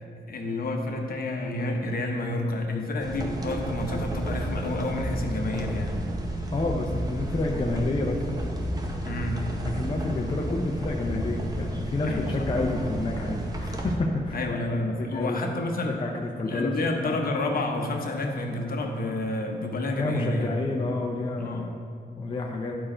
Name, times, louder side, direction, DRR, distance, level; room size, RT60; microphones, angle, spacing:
voice 1, 0.3-6.0 9.0-9.4 12.0-12.5 14.3-16.0 16.5-20.5 21.4-21.7, left 2 dB, 60° left, 2 dB, 0.9 m, -29 dB
sound 1, 3.0-14.0, right 1 dB, 20° right, 0.7 m, -32 dB
voice 2, 6.5-8.2 9.6-14.4 15.0-15.5 15.9-16.7 17.0-17.2 20.0-21.8 22.2-22.7, left 2 dB, 30° left, 0 dB, 0.5 m, -29 dB
10.0 x 4.6 x 4.3 m, 2.3 s
wide cardioid pair, 180°, 18 cm